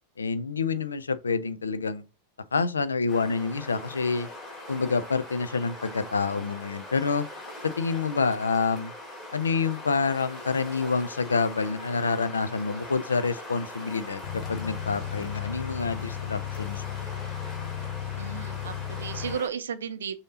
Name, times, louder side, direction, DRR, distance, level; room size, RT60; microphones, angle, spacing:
voice 1, 0.2-2.0 2.5-4.3 4.7-7.2 7.6-8.9 9.3-14.2 14.5-17.0, left 4 dB, 75° left, 0.4 m, -27 dB
sound 1, 3.1-19.5, left 1 dB, 25° left, 2.4 m, -41 dB
sound 2, 14.2-19.3, left 11 dB, 50° left, 0.8 m, -35 dB
voice 2, 18.2-20.2, right 7 dB, 65° right, 0.5 m, -34 dB
6.4 x 2.8 x 2.6 m
figure-of-eight pair, 90°, 0 cm